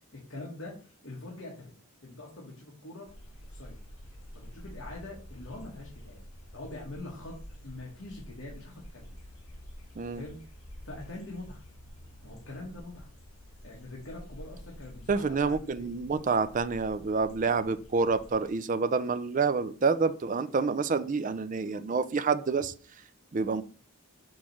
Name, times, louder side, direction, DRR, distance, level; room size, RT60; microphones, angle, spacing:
voice 1, 0.1-1.7 2.0-3.1 3.4-3.8 4.3-6.2 6.5-7.4 7.6-9.2 10.1-10.4 10.8-11.6 12.2-13.1 13.6-15.9, left 2 dB, 65° left, 1.7 m, -44 dB
sound 1, 3.1-18.5, equal, 85° left, 2.0 m, -49 dB
voice 2, 15.1-22.7 23.3-23.6, right 4 dB, 35° right, 0.4 m, -28 dB
6.3 x 3.1 x 5.8 m
head